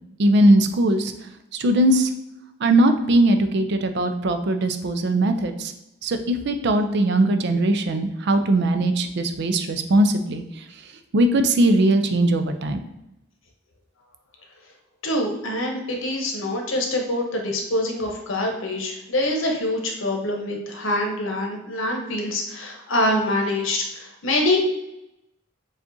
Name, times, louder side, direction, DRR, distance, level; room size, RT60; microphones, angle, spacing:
voice 1, 0.2-1.1 1.5-2.1 2.6-5.7 6.0-10.4 11.1-12.8, right 1 dB, 60° right, 7 dB, 0.4 m, -20 dB
voice 2, 15.0-24.6, left 1 dB, 80° left, 2 dB, 0.9 m, -25 dB
7.0 x 2.4 x 2.7 m, 0.89 s
head